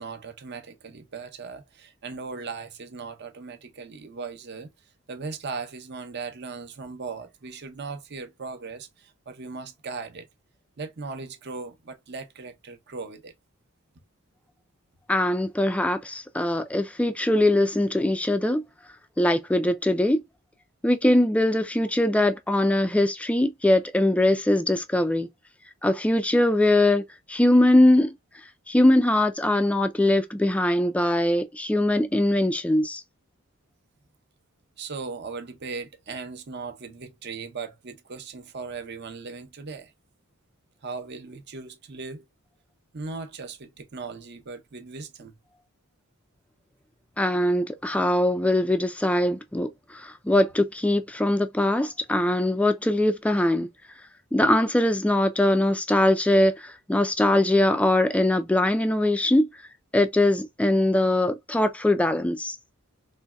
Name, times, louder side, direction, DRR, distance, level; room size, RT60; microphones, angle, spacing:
voice 1, 0.0-4.7 5.1-10.3 10.8-13.3 34.8-39.9 40.8-42.2 42.9-45.4, right 4 dB, 50° right, 0.7 m, -38 dB
voice 2, 15.1-18.6 19.2-20.2 20.8-25.3 25.8-27.0 27.3-28.1 28.7-33.0 47.2-53.7 54.3-59.5 59.9-62.6, left 1 dB, 5° left, 0.3 m, -22 dB
4.0 x 3.1 x 2.3 m
head